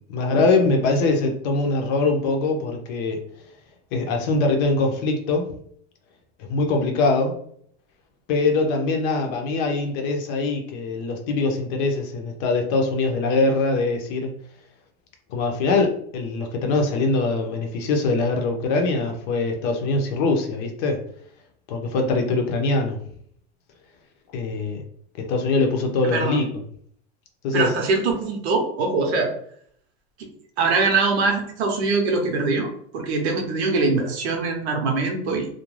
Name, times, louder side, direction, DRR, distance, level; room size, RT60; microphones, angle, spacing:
voice 1, 0.1-3.2 3.9-5.5 6.4-7.4 8.3-14.3 15.3-21.0 21.7-23.0 24.3-24.8 25.2-26.5 27.4-27.7, left 3 dB, 50° left, 3 dB, 0.6 m, -22 dB
voice 2, 26.0-26.4 27.5-29.3 30.6-32.7 32.9-35.5, right 3 dB, 90° right, 3 dB, 0.8 m, -22 dB
2.4 x 2.2 x 3.1 m, 0.64 s
supercardioid pair, 150°, 32 cm